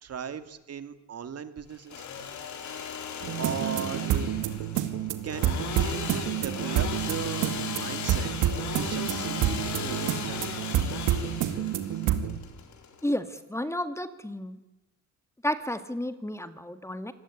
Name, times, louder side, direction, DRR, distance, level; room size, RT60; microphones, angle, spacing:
voice 1, 0.0-2.1 3.2-4.3 5.2-5.5 5.8-8.3 8.7-10.5, right 8 dB, 55° right, 11 dB, 2.3 m, -37 dB
Engine / Sawing, 1.7-13.4, left 7 dB, 70° left, 4.2 m, -37 dB
sound 1, 3.2-12.4, right 10 dB, 90° right, 2.2 m, -29 dB
voice 2, 13.0-14.6 15.4-17.1, left 1 dB, 10° left, 11 dB, 1.9 m, -32 dB
25.5 x 19.0 x 9.9 m, 1.0 s
cardioid pair, 90°, 30 cm